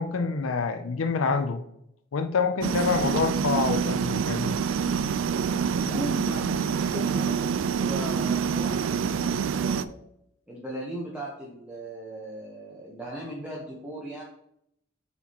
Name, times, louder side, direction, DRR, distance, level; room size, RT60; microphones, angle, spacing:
voice 1, 0.0-1.6 2.1-4.6, left 4 dB, 75° left, 8 dB, 0.5 m, -26 dB
sound 1, 2.6-9.8, right 6 dB, 70° right, 0.3 m, -26 dB
voice 2, 5.8-10.0 10.5-14.2, right 1 dB, 10° right, -5 dB, 1.0 m, -38 dB
7.8 x 4.4 x 2.9 m, 0.74 s
head